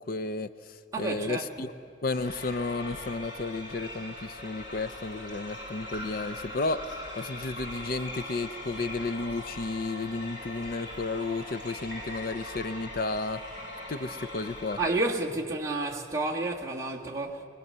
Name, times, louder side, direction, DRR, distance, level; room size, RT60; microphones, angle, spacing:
voice 1, 0.0-1.7 2.0-13.4 13.9-14.8, left 3 dB, 50° left, 0.5 m, -33 dB
voice 2, 0.9-1.4 14.8-17.4, right 2 dB, 15° right, 1.9 m, -30 dB
sound 1, 2.1-14.9, left 1 dB, 65° left, 7.0 m, -41 dB
23.0 x 22.0 x 6.8 m
head